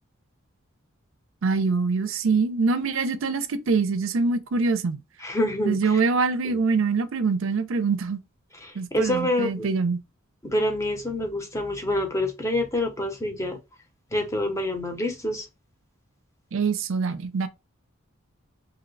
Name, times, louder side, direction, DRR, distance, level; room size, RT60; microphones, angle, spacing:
voice 1, 1.4-5.0 5.7-8.2 8.8-10.0 16.5-17.5, right 4 dB, 70° right, 0.5 m, -24 dB
voice 2, 5.2-6.0 6.4-6.6 8.6-9.7 10.4-13.6 14.1-15.4, left 1 dB, 15° left, 0.6 m, -27 dB
2.8 x 2.1 x 3.8 m
head